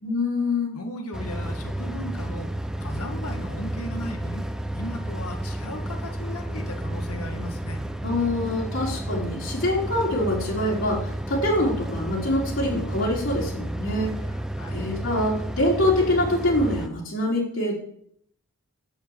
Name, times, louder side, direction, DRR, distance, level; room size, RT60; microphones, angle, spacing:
voice 1, 0.0-0.7 8.0-14.1 14.7-17.7, left 1 dB, 60° left, -4 dB, 3.5 m, -25 dB
voice 2, 0.7-2.5 2.8-4.5 4.7-7.8 14.6-14.8, left 1 dB, 85° left, 4 dB, 1.7 m, -36 dB
sound 1, 1.1-16.9, right 1 dB, 5° right, 0.7 m, -31 dB
7.6 x 7.2 x 8.0 m, 0.66 s
head